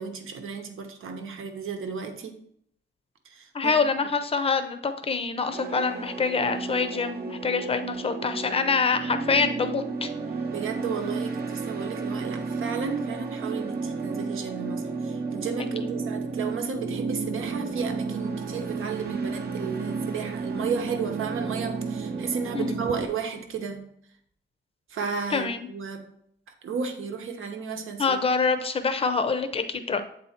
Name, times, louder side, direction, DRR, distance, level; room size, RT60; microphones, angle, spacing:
voice 1, 0.0-2.4 3.2-3.7 10.5-23.9 24.9-26.1 26.6-28.2, right 6 dB, 80° right, 5 dB, 1.0 m, -33 dB
voice 2, 3.5-10.1 15.8-15.9 22.5-22.8 25.3-25.7 28.0-30.0, left 4 dB, 30° left, 9 dB, 0.5 m, -26 dB
sound 1, 5.5-23.1, right 4 dB, 50° right, 0.7 m, -32 dB
7.8 x 4.1 x 4.3 m, 0.68 s
wide cardioid pair, 170°, 21 cm